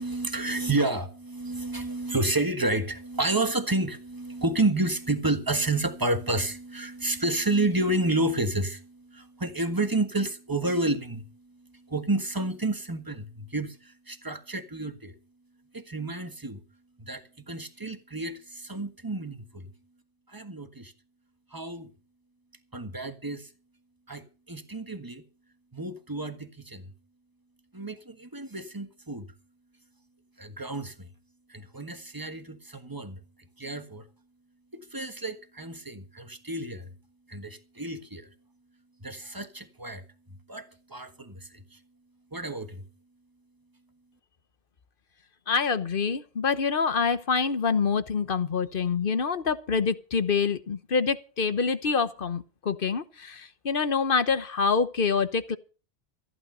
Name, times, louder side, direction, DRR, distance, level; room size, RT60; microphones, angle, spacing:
voice 1, 0.0-15.2 15.7-16.6 17.0-19.7 20.3-20.9 21.5-21.9 22.7-23.5 24.1-25.2 25.7-26.9 27.7-29.3 30.4-31.1 31.5-33.2 33.6-34.1 34.7-36.9 37.3-38.3 39.0-41.8 42.3-42.9, right 2 dB, 20° right, 1.4 m, -30 dB
voice 2, 45.5-55.6, left 5 dB, 55° left, 1.2 m, -26 dB
15.0 x 11.0 x 5.5 m
omnidirectional pair, 1.1 m